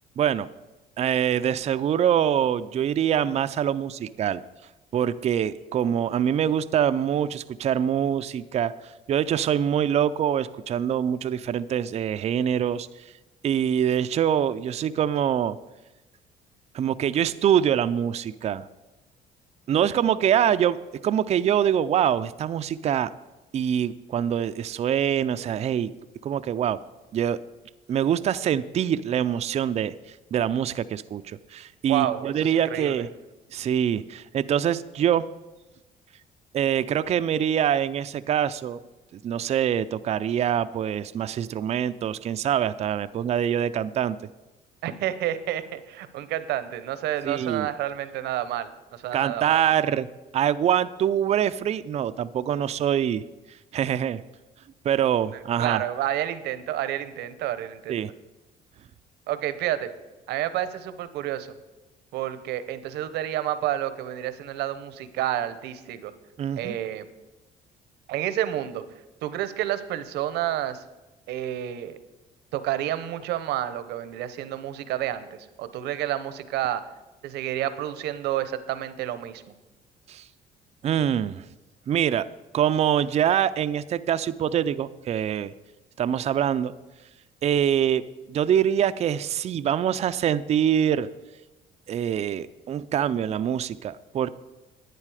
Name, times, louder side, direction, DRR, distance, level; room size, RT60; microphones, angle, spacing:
voice 1, 0.2-0.5 1.0-4.4 4.9-12.9 13.4-15.6 16.7-18.6 19.7-20.8 21.0-23.1 23.5-25.9 26.2-26.8 27.1-27.4 27.9-29.9 30.3-33.1 33.5-35.2 36.5-38.8 39.2-44.2 47.2-47.7 49.1-50.1 50.3-53.2 53.7-54.2 54.8-55.8 57.9-58.1 66.4-66.7 80.1-80.2 80.8-81.4 81.9-82.3 82.5-85.5 86.0-86.7 87.4-88.0 88.3-91.1 91.9-94.3, right 9 dB, 40° right, 12 dB, 0.4 m, -24 dB
voice 2, 31.9-33.0 44.8-49.6 55.6-58.0 59.3-59.9 60.3-61.6 62.1-66.1 66.6-67.1 68.1-68.8 69.2-70.8 71.3-72.0 72.5-76.8 77.2-79.4, right 12 dB, 80° right, 12 dB, 0.8 m, -29 dB
11.0 x 9.2 x 4.9 m, 1.1 s
cardioid pair, 110°, 17 cm